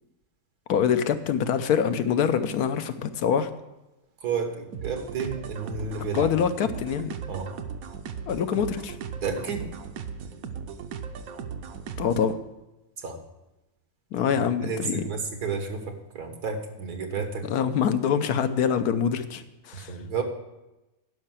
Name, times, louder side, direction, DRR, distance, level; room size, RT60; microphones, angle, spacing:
voice 1, 0.7-3.5 6.1-7.2 8.3-9.0 12.0-12.4 14.1-15.0 17.5-19.9, left 7 dB, 85° left, 10 dB, 1.3 m, -25 dB
voice 2, 4.2-6.3 7.3-7.5 9.2-9.7 13.0-13.2 14.6-17.4 19.7-20.2, right 5 dB, 85° right, 5 dB, 1.8 m, -31 dB
sound 1, 4.7-12.3, right 6 dB, 70° right, 1.1 m, -37 dB
11.0 x 5.6 x 7.4 m, 0.99 s
omnidirectional pair, 1.6 m